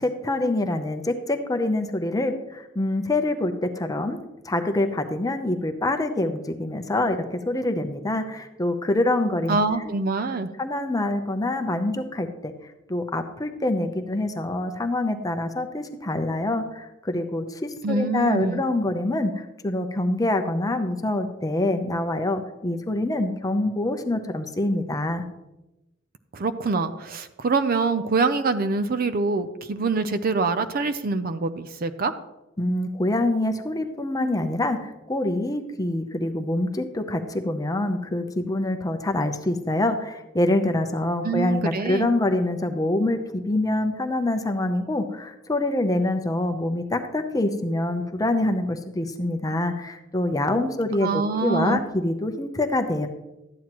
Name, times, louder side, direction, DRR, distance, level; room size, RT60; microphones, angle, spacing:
voice 1, 0.0-4.2 4.4-7.2 7.5-9.6 10.6-12.5 12.9-25.2 32.6-53.1, left 1 dB, 20° left, 6 dB, 0.7 m, -25 dB
voice 2, 9.5-10.5 17.8-18.6 26.3-32.1 41.2-42.1 51.0-51.8, right 4 dB, 50° right, 11 dB, 0.5 m, -25 dB
12.5 x 9.2 x 3.0 m, 0.97 s
head